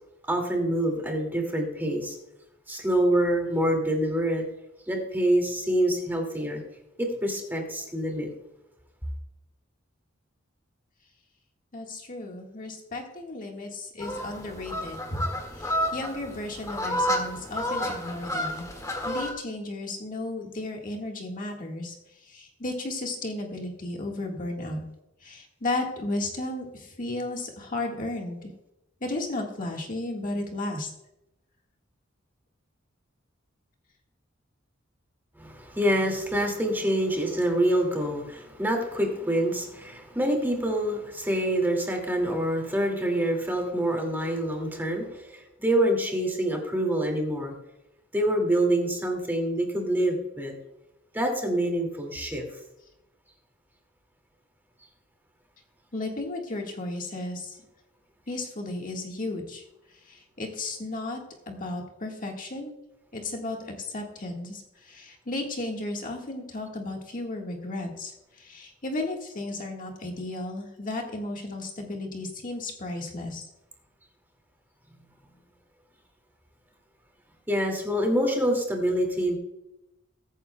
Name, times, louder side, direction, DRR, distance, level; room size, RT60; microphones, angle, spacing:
voice 1, 0.3-2.2 2.7-4.4 4.9-6.6 7.0-8.3 35.4-47.5 48.1-50.5 51.1-52.4 77.5-79.4, right 1 dB, 10° right, 1 dB, 2.3 m, -26 dB
voice 2, 11.7-18.7 19.0-24.8 25.2-28.5 29.0-30.9 55.9-57.6 58.3-59.6 59.9-61.2 61.5-62.7 63.1-73.4, left 2 dB, 45° left, 1 dB, 1.7 m, -34 dB
sound 1, 14.0-19.3, left 1 dB, 15° left, 1.9 m, -30 dB
22.0 x 9.3 x 2.3 m, 0.88 s
head